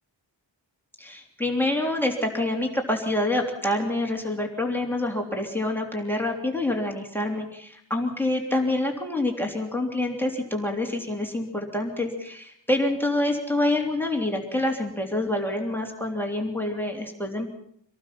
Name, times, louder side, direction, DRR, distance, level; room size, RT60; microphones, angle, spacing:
voice 1, 1.0-17.5, left 1 dB, 5° left, 2 dB, 3.2 m, -27 dB
26.0 x 18.5 x 5.8 m, 0.69 s
wide cardioid pair, 140°, 45 cm